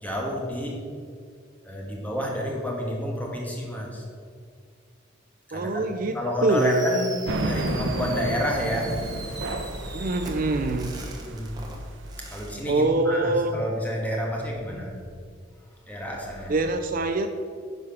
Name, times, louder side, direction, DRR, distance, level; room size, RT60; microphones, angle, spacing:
voice 1, 0.0-0.8 1.6-4.0 5.5-7.1 7.4-8.9 11.2-11.5 12.3-14.9 15.9-16.5, equal, 10° left, -2 dB, 1.6 m, -29 dB
voice 2, 5.5-6.2 6.4-6.9 9.9-10.9 12.7-13.6 16.5-17.3, right 2 dB, 45° right, 7 dB, 0.5 m, -24 dB
Fireworks, 6.5-12.6, right 3 dB, 20° right, 1.1 m, -41 dB
sound 1, 7.3-12.6, right 1 dB, 75° right, 0.8 m, -32 dB
10.5 x 4.8 x 5.9 m, 2.1 s
head